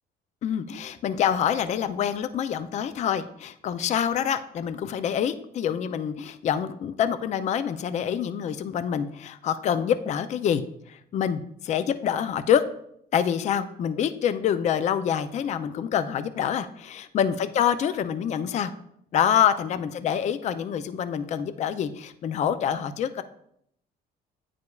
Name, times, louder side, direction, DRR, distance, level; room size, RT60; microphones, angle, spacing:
voice 1, 0.4-10.6 10.9-12.6 13.1-18.7 19.1-23.2, left 8 dB, 45° left, 11 dB, 0.4 m, -26 dB
9.3 x 4.9 x 2.3 m, 0.71 s
cardioid pair, 110°, 17 cm